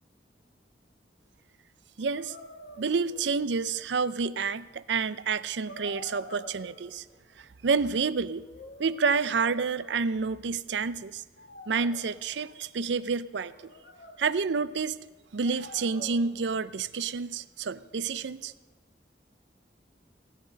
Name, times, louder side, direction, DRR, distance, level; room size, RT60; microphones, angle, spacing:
sound 1, 2.0-3.7 4.5-4.6 5.7-7.2 8.2-10.4 11.4-12.6 13.3-14.6 15.4-16.4, left 1 dB, 75° left, 2.0 m, -48 dB
voice 1, 2.0-2.4 2.8-7.0 7.4-8.5 8.8-11.2 11.7-13.7 14.2-15.0 15.3-18.5, right 5 dB, 90° right, 16 dB, 0.5 m, -29 dB
17.0 x 11.0 x 6.5 m, 1.3 s
head